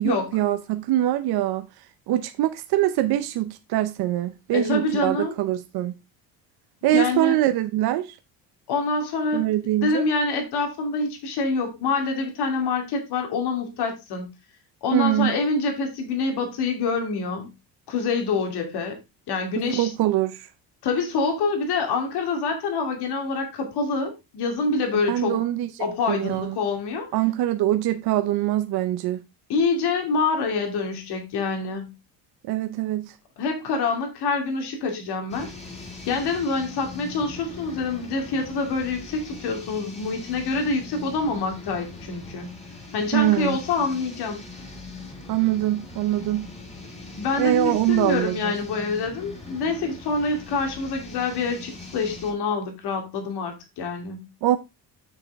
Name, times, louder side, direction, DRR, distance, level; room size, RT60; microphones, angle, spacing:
voice 1, 0.0-1.7 2.1-5.9 6.8-8.2 9.3-10.1 14.9-15.4 19.6-20.5 25.1-25.7 26.1-26.6 27.1-29.2 32.5-33.1 43.1-43.6 45.3-46.5 47.4-48.5 54.4-54.6, right 14 dB, 65° right, 0.8 m, -23 dB
voice 2, 4.5-5.3 6.9-7.4 8.7-9.5 9.8-14.3 14.8-17.5 17.9-19.0 19.3-19.9 20.8-25.4 25.8-27.1 29.5-31.9 33.4-35.5 36.1-42.5 42.9-44.4 47.1-54.3, left 4 dB, 70° left, 2.7 m, -26 dB
sound 1, 35.3-52.3, left 3 dB, 15° left, 2.6 m, -41 dB
6.9 x 6.6 x 3.5 m
cardioid pair, 110°, 41 cm